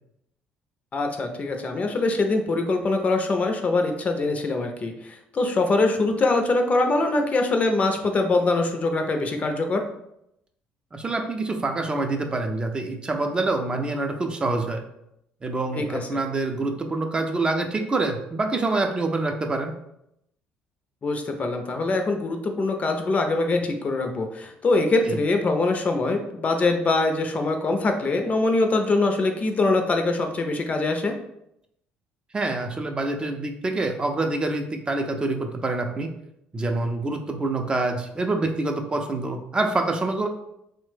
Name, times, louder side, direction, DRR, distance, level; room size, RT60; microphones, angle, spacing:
voice 1, 0.9-9.9 15.7-16.2 21.0-31.2, left 2 dB, 35° left, 5 dB, 0.4 m, -23 dB
voice 2, 10.9-14.8 15.4-19.7 25.1-25.2 32.3-36.1 36.5-40.3, right 2 dB, 25° right, 4 dB, 0.4 m, -26 dB
2.9 x 2.1 x 3.2 m, 0.79 s
supercardioid pair, 80°, 4 cm